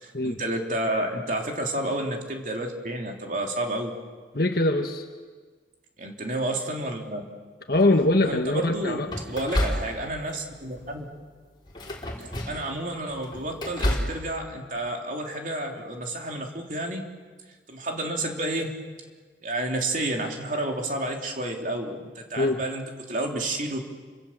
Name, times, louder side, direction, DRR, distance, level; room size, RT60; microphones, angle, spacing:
voice 1, 0.0-3.9 6.0-7.3 8.2-11.1 12.2-17.0 17.7-18.8 19.4-23.8, right 1 dB, 45° right, 2 dB, 3.3 m, -30 dB
voice 2, 4.3-5.0 7.7-9.1 22.4-22.6, left 2 dB, 55° left, 4 dB, 1.5 m, -22 dB
sound 1, 7.7-8.2 9.1-10.3 10.7-11.0 11.7-12.7 13.1-14.2, left 1 dB, 25° left, 4.2 m, -30 dB
30.0 x 26.0 x 7.5 m, 1.4 s
head